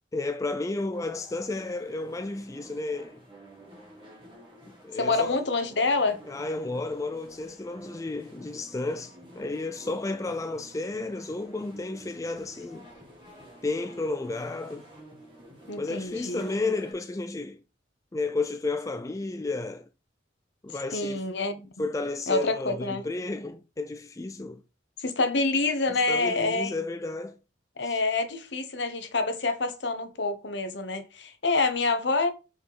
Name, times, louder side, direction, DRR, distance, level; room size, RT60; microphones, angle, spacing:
voice 1, 0.1-3.2 4.7-5.4 6.3-12.9 13.6-14.9 15.8-17.6 18.1-19.9 20.6-21.3 21.8-24.6 25.9-27.4 27.8-28.0, left 3 dB, 15° left, 0.4 m, -32 dB
sound 1, 0.9-16.9, right 1 dB, 25° right, 2.5 m, -50 dB
voice 2, 5.0-6.2 15.7-16.5 20.9-21.7 22.3-23.0 25.0-26.8 27.8-32.3, left 3 dB, 70° left, 1.1 m, -27 dB
5.1 x 4.7 x 4.1 m
head